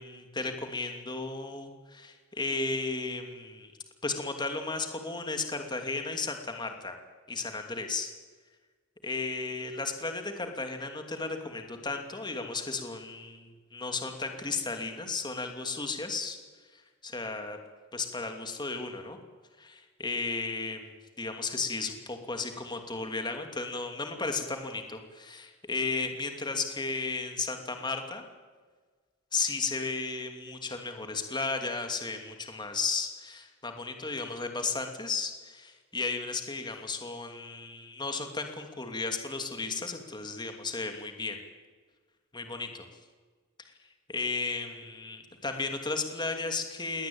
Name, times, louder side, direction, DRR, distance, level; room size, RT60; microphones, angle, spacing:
voice 1, 0.0-3.7 4.0-7.0 7.3-8.1 9.0-16.4 16.7-17.6 17.9-19.2 19.6-28.2 29.3-41.4 42.3-42.9 44.1-47.1, left 3 dB, 20° left, 5 dB, 2.7 m, -34 dB
21.5 x 18.0 x 8.8 m, 1.5 s
head